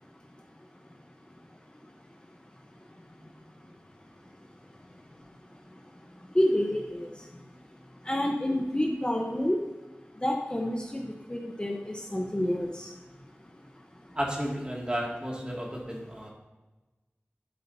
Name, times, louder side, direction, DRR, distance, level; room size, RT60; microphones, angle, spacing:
voice 1, 6.3-7.1 8.1-9.6 10.2-11.0 11.3-12.9, left 1 dB, 20° left, 1 dB, 1.0 m, -28 dB
voice 2, 14.1-16.3, equal, 20° right, -2 dB, 2.3 m, -32 dB
12.0 x 8.4 x 2.8 m, 1.2 s
wide cardioid pair, 60°, 4 cm